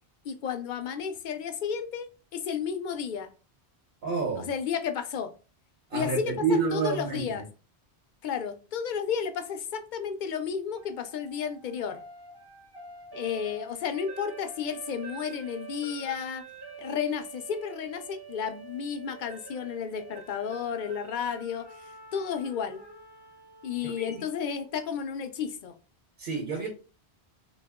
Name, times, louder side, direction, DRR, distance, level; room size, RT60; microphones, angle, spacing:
voice 1, 0.2-3.3 4.4-5.3 5.9-7.4 8.2-12.0 13.1-16.4 16.8-21.7 22.1-22.8 23.6-25.7, left 7 dB, 60° left, 8 dB, 0.6 m, -32 dB
voice 2, 4.0-4.5 5.9-7.4 23.8-24.1 26.2-26.7, right 4 dB, 65° right, 1 dB, 1.0 m, -29 dB
sound 1, 10.8-24.9, right 4 dB, 30° right, 0.5 m, -47 dB
2.8 x 2.3 x 3.5 m, 0.34 s
omnidirectional pair, 1.1 m